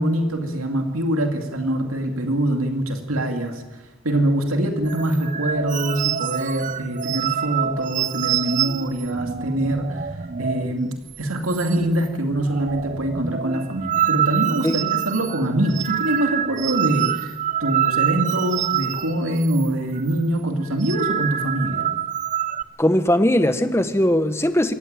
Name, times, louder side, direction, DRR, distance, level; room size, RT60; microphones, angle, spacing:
voice 1, 0.0-10.1 10.4-21.9, right 1 dB, 85° right, 4 dB, 2.5 m, -24 dB
sound 1, 4.8-10.8 11.1-11.2 11.5-12.1 12.3-19.7 19.9-20.2 20.6-22.6, right 9 dB, 35° right, 0.6 m, -26 dB
voice 2, 22.8-24.7, left 1 dB, 10° left, 9 dB, 1.1 m, -19 dB
27.0 x 14.5 x 9.0 m, 1.2 s
head